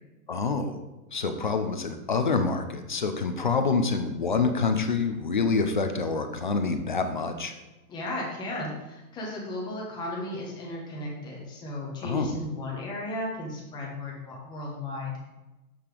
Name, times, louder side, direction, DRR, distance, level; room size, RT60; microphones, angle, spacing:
voice 1, 0.3-0.8 1.1-7.5 12.0-12.3, left 4 dB, 35° left, 7 dB, 0.4 m, -27 dB
voice 2, 7.9-15.2, left 1 dB, 10° left, -4 dB, 1.1 m, -35 dB
6.9 x 5.9 x 4.8 m, 1.1 s
hypercardioid pair, 170°, 46 cm